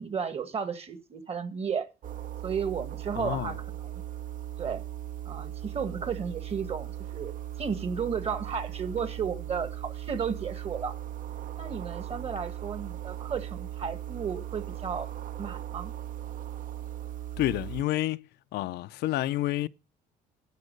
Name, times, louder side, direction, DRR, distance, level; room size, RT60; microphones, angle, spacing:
voice 1, 0.0-1.9 2.4-3.6 3.8-4.0 4.6-4.8 5.2-10.9 11.6-15.1 15.4-15.9, right 6 dB, 35° right, 1.7 m, -33 dB
sound 1, 2.0-17.8, right 12 dB, 55° right, 0.8 m, -38 dB
voice 2, 3.2-3.5 17.4-18.2 18.5-19.7, left 15 dB, 75° left, 0.5 m, -29 dB
11.0 x 7.1 x 6.5 m
cardioid pair, 110°, 17 cm